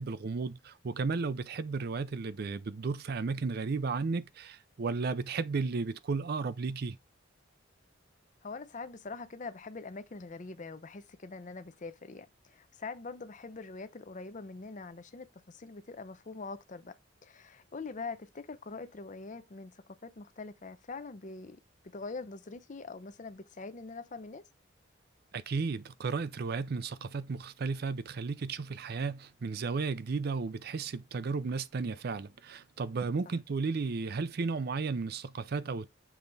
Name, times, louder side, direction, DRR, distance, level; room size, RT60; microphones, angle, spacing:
voice 1, 0.0-7.0 25.3-35.9, right 4 dB, 50° right, 0.4 m, -34 dB
voice 2, 8.4-16.9 17.2-19.7 20.0-21.6 21.8-24.4, left 4 dB, 40° left, 0.6 m, -43 dB
7.0 x 3.5 x 3.9 m
head